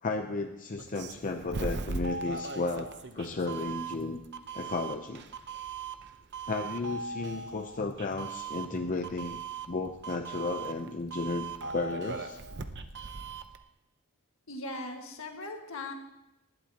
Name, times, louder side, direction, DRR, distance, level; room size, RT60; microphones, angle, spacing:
voice 1, 0.0-4.2 4.5-5.2 6.5-9.4 9.7-12.4, left 3 dB, 35° left, 4 dB, 0.6 m, -34 dB
Doorbell, 0.8-13.6, right 4 dB, 55° right, 0.8 m, -39 dB
voice 2, 14.5-15.9, left 2 dB, 65° left, 3 dB, 1.8 m, -39 dB
19.5 x 11.5 x 2.9 m, 0.92 s
head